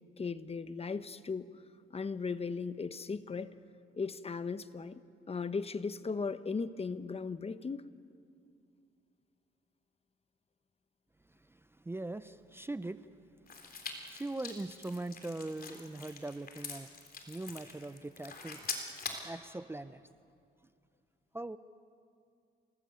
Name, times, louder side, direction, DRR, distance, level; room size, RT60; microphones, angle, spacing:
voice 1, 0.2-1.5 1.9-3.5 4.0-5.0 5.3-7.9, left 4 dB, 30° left, 13 dB, 1.0 m, -37 dB
voice 2, 11.2-13.1 13.5-16.9 17.3-18.6 19.1-20.1 21.3-21.6, right 2 dB, 10° right, 12 dB, 0.6 m, -41 dB
sound 1, 13.5-19.3, left 4 dB, 50° left, 3.7 m, -44 dB
28.0 x 19.5 x 9.0 m, 2.4 s
cardioid pair, 90°, 20 cm